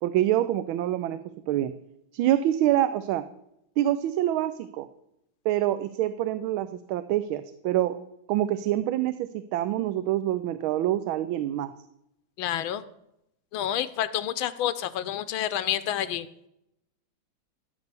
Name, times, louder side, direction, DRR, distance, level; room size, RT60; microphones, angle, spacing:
voice 1, 0.0-1.2 1.5-1.7 2.1-3.2 3.8-4.9 5.4-8.0 8.3-11.7, right 13 dB, 80° right, 12 dB, 1.4 m, -26 dB
voice 2, 12.4-12.8 13.5-16.3, left 11 dB, 85° left, 13 dB, 1.4 m, -29 dB
14.0 x 6.1 x 6.7 m, 0.82 s
omnidirectional pair, 2.2 m